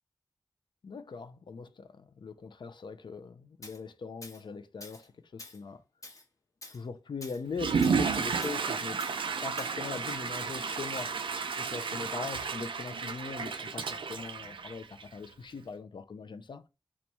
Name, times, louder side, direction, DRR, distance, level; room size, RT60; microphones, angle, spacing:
voice 1, 0.8-5.8 6.7-9.0 9.4-16.7, left 5 dB, 65° left, 0.4 m, -41 dB
Tools, 3.6-3.8 4.2-4.4 4.8-5.1 5.4-5.6 6.0-6.2 6.6-6.8 7.2-7.4 7.8-8.0 8.4-8.6 9.0-9.2 9.6-9.8, left 2 dB, 40° left, 0.8 m, -47 dB
Water / Toilet flush, 7.5-15.2, right 5 dB, 85° right, 0.4 m, -32 dB
3.0 x 2.3 x 4.0 m
wide cardioid pair, 100°, 9 cm